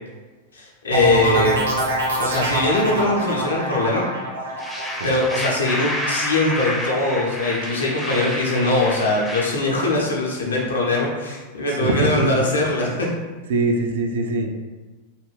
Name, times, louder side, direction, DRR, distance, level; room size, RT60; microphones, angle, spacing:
voice 1, 0.5-1.6 2.1-4.1 5.0-13.1, left 2 dB, 70° left, -2 dB, 0.6 m, -21 dB
sound 1, 0.9-6.5 6.9-7.4, right 1 dB, 75° right, 0.9 m, -25 dB
sound 2, 4.6-9.5, left 1 dB, 5° left, 0.5 m, -29 dB
voice 2, 11.7-12.5 13.5-14.6, right 2 dB, 60° right, 4 dB, 0.3 m, -22 dB
2.4 x 2.3 x 3.3 m, 1.3 s
figure-of-eight pair, 90°, 0 cm